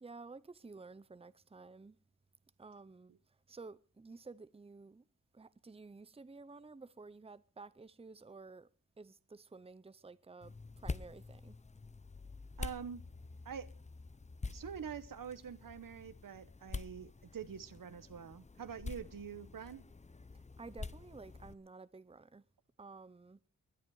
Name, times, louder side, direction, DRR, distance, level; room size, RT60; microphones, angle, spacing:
voice 1, 0.0-2.0 2.6-3.1 3.5-5.0 5.3-8.7 9.0-11.6 20.3-22.4 22.8-23.4, right 3 dB, 15° right, 0.7 m, -52 dB
sound 1, 10.4-21.5, left 3 dB, 20° left, 0.7 m, -47 dB
voice 2, 12.6-13.0 13.4-13.7 14.5-19.8, right 7 dB, 80° right, 1.1 m, -45 dB
20.5 x 10.5 x 4.8 m
wide cardioid pair, 75°, 33 cm